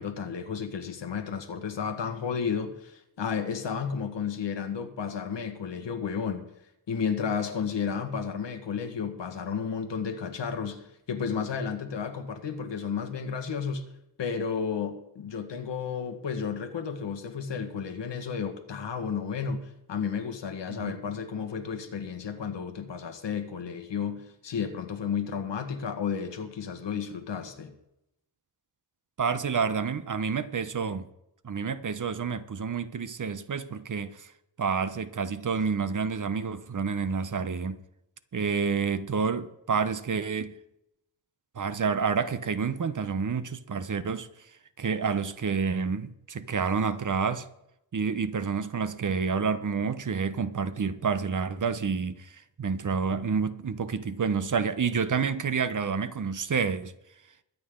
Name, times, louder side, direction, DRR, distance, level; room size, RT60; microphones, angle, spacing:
voice 1, 0.0-6.5 6.9-13.8 14.2-27.7, left 6 dB, 85° left, 1.7 m, -32 dB
voice 2, 29.2-31.1 31.4-34.3 34.6-37.8 38.3-40.5 41.5-44.3 44.8-47.5 47.9-56.9, right 5 dB, 45° right, 0.9 m, -29 dB
22.5 x 8.7 x 3.8 m
wide cardioid pair, 100°, 42 cm